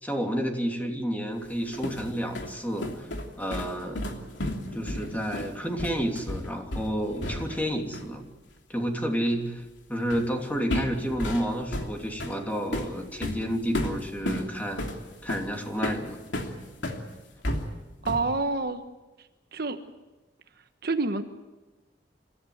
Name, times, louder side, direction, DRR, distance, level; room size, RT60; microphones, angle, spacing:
voice 1, 0.0-3.1 3.4-4.2 4.7-8.2 8.7-9.6 9.9-14.8 15.2-16.2, equal, 10° left, 2 dB, 2.9 m, -30 dB
sound 1, 1.5-7.7 7.9-8.2 10.1-10.3 10.7-17.0 17.4-18.4, left 1 dB, 80° left, 3.0 m, -33 dB
voice 2, 18.1-18.8 19.5-19.8 20.8-21.2, right 3 dB, 60° right, 7 dB, 1.3 m, -27 dB
27.0 x 14.5 x 9.4 m, 1.1 s
head